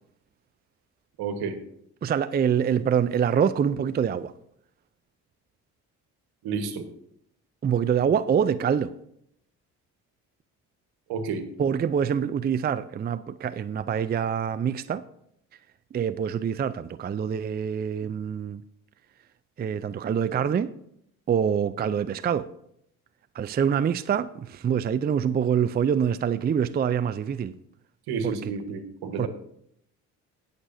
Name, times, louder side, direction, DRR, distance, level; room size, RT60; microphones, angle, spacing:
voice 1, 1.2-1.6 6.4-6.9 11.1-11.4 28.1-29.3, right 5 dB, 70° right, 1.5 m, -30 dB
voice 2, 2.0-4.3 7.6-8.9 11.6-15.0 15.9-18.6 19.6-20.7 21.3-22.5 23.3-27.6 28.2-28.5 29.2-29.3, right 8 dB, 25° right, 0.4 m, -25 dB
19.5 x 6.6 x 2.7 m
hypercardioid pair, 55°, 38 cm